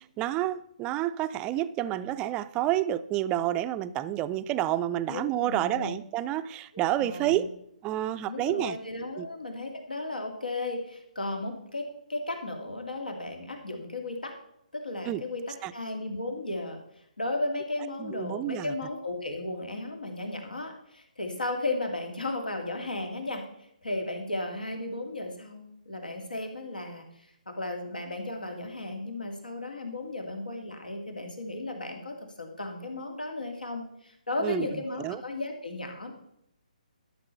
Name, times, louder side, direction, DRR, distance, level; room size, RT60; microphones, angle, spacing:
voice 1, 0.2-7.5 7.8-8.8 9.2-9.3 15.1-15.2 15.6-15.7 18.0-18.7 34.4-35.2, right 13 dB, 20° right, 13 dB, 0.4 m, -29 dB
voice 2, 5.1-6.0 7.0-7.5 8.3-14.3 14.7-16.8 17.2-23.4 23.8-36.1, left 2 dB, 90° left, 4 dB, 2.3 m, -35 dB
12.5 x 6.0 x 5.6 m, 0.76 s
figure-of-eight pair, 140°, 5 cm